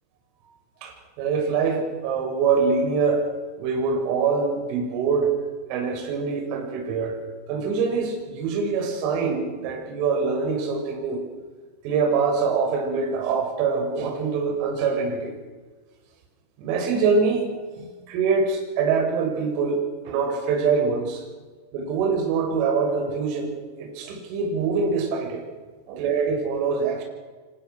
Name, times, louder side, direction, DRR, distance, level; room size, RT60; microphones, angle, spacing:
voice 1, 0.8-3.3 3.6-5.3 5.7-7.2 7.5-11.2 11.8-15.3 16.6-17.5 17.7-19.8 20.0-21.2 21.7-25.4 25.9-27.0, right 5 dB, 45° right, 3 dB, 6.5 m, -24 dB
25.5 x 20.0 x 6.3 m, 1.3 s
figure-of-eight pair, 90°, 0 cm